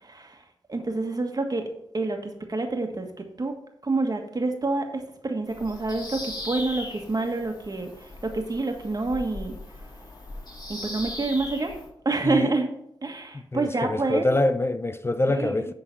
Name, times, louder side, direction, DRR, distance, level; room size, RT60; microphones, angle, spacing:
voice 1, 0.0-0.4 0.7-1.6 1.9-3.1 3.4-3.5 3.8-8.1 8.3-9.5 10.7-11.7 12.0-12.7 13.0-14.3 15.3-15.7, right 3 dB, 40° right, 1.6 m, -27 dB
Bird vocalization bird call bird song, 5.5-11.9, left 1 dB, 45° left, 2.6 m, -39 dB
voice 2, 13.5-15.7, left 2 dB, 25° left, 0.5 m, -25 dB
11.0 x 3.9 x 4.1 m
cardioid pair, 40°, 10 cm